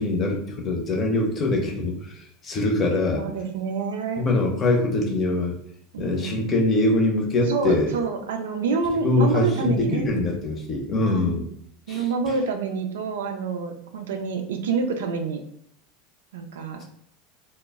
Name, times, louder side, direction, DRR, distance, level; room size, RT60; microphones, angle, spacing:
voice 1, 0.0-1.9 2.4-3.2 4.2-5.5 6.0-7.9 8.9-11.5 11.9-12.1, left 2 dB, 30° left, 1 dB, 0.6 m, -23 dB
voice 2, 3.2-4.3 5.9-6.3 7.5-10.1 11.1-11.4 11.9-15.4 16.3-16.8, right 4 dB, 90° right, 5 dB, 0.4 m, -27 dB
2.1 x 2.0 x 3.4 m, 0.67 s
supercardioid pair, 115°, 0 cm